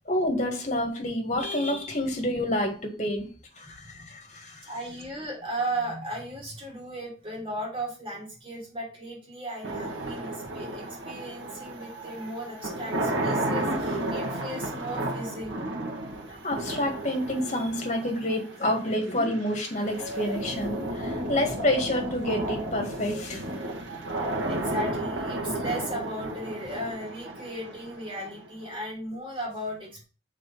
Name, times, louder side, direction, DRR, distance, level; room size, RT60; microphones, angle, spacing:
voice 1, 0.1-3.2 3.6-4.6 16.4-23.6, left 1 dB, 40° left, 1.8 m, -28 dB
voice 2, 3.6-4.1 4.6-15.7 17.5-17.7 24.5-30.0, right 1 dB, 30° right, 3.4 m, -36 dB
sound 1, 9.6-28.7, right 1 dB, 80° right, 1.9 m, -33 dB
6.3 x 4.3 x 5.5 m
head